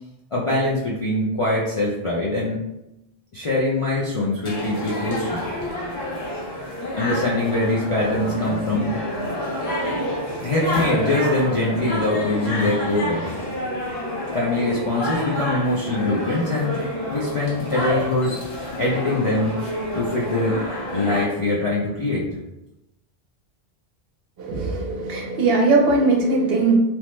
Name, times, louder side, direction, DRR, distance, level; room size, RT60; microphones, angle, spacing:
voice 1, 0.3-2.6 3.3-5.5 7.0-9.0 10.4-13.4 14.3-16.8 17.1-18.4 18.8-19.6 19.9-20.6 20.9-22.3, left 2 dB, 55° left, -6 dB, 0.3 m, -23 dB
sound 1, 4.4-21.3, left 1 dB, 75° left, 1.1 m, -28 dB
voice 2, 24.4-26.8, right 3 dB, 70° right, 0 dB, 0.8 m, -19 dB
3.0 x 2.0 x 3.1 m, 0.91 s
omnidirectional pair, 1.1 m